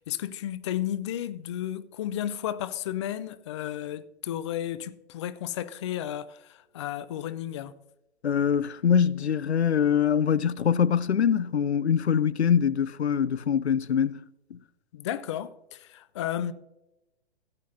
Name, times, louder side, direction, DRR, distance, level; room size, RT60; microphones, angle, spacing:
voice 1, 0.1-7.7 14.9-16.5, left 11 dB, 30° left, 0.4 m, -33 dB
voice 2, 8.2-14.2 14.5-14.6, left 8 dB, 85° left, 0.5 m, -24 dB
16.5 x 8.2 x 2.6 m
figure-of-eight pair, 125°, 32 cm